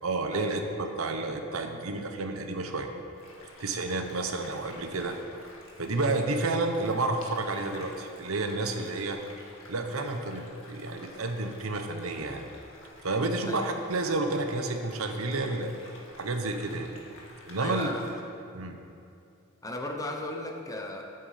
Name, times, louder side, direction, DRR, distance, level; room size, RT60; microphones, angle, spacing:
voice 1, 0.0-2.9 3.6-5.2 5.8-9.2 9.7-12.4 13.0-15.7 16.2-16.9 17.4-17.9 18.5-18.8, right 2 dB, 80° right, 5 dB, 0.9 m, -30 dB
sound 1, 3.1-18.1, left 1 dB, 65° left, 2.1 m, -51 dB
voice 2, 17.6-18.0 19.6-21.0, left 2 dB, 15° left, 2 dB, 1.0 m, -35 dB
13.5 x 8.0 x 5.0 m, 2.6 s
head